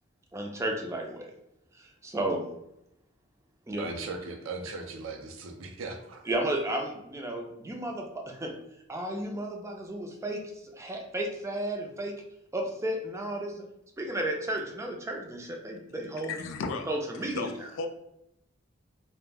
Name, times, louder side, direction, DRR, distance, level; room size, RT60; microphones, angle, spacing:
voice 1, 0.3-1.3 1.8-2.4 3.7-3.9 6.3-8.5 8.9-12.1 12.5-13.6 14.0-16.3 16.9-17.7, right 1 dB, 15° right, 1 dB, 0.4 m, -33 dB
voice 2, 3.8-6.3, right 3 dB, 85° right, 3 dB, 0.5 m, -38 dB
voice 3, 16.3-16.9 17.3-17.9, left 4 dB, 70° left, 7 dB, 0.3 m, -34 dB
2.3 x 2.1 x 3.3 m, 0.81 s
head